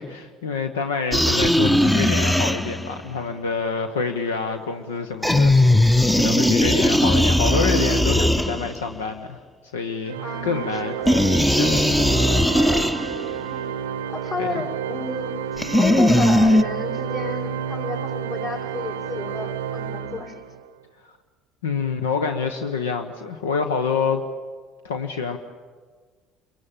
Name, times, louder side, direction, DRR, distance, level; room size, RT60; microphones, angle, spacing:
voice 1, 0.0-9.4 9.7-11.0 11.5-12.4 14.4-14.5 21.0-21.2 21.6-24.2 24.8-25.4, left 5 dB, 75° left, 7 dB, 1.0 m, -27 dB
sound 1, 1.1-3.0 5.2-8.9 11.1-13.3 15.6-16.6, left 1 dB, 5° left, 0.8 m, -18 dB
Organ, 10.1-20.7, right 8 dB, 70° right, 0.7 m, -30 dB
voice 2, 10.2-11.1 13.5-13.7 14.1-15.4 15.8-20.4, left 3 dB, 45° left, -2 dB, 5.7 m, -31 dB
29.0 x 23.0 x 7.5 m, 1.5 s
figure-of-eight pair, 55°, 0 cm